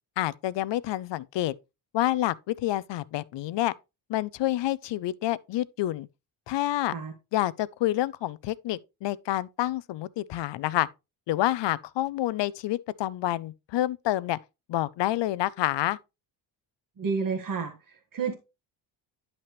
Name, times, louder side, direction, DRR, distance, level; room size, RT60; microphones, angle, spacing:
voice 1, 0.2-1.5 1.9-3.7 4.1-6.1 6.5-6.9 7.3-10.9 11.3-14.4 14.7-16.0, left 14 dB, 65° left, 0.6 m, -28 dB
voice 2, 17.0-18.3, right 5 dB, 45° right, 1.7 m, -30 dB
10.5 x 5.9 x 3.0 m
cardioid pair, 95°, 47 cm